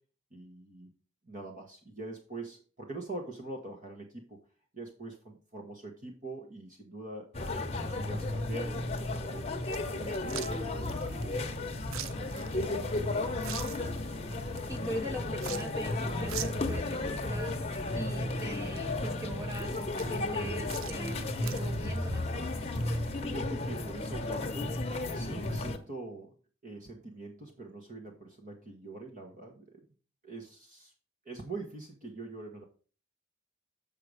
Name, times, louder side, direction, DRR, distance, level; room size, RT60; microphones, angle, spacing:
voice 1, 0.3-0.9 1.2-4.4 4.7-9.5 9.9-12.6 12.9-13.3 22.7-24.8 25.1-26.3 26.6-29.8 30.2-30.9 31.2-32.6, right 2 dB, 40° right, 1 dB, 1.2 m, -44 dB
sound 1, 7.3-25.8, left 2 dB, 30° left, 0.9 m, -34 dB
sound 2, 9.7-23.2, right 8 dB, 75° right, 0.5 m, -47 dB
voice 2, 14.7-22.4, right 1 dB, 15° right, 5 dB, 0.8 m, -41 dB
7.5 x 5.3 x 4.8 m, 0.39 s
head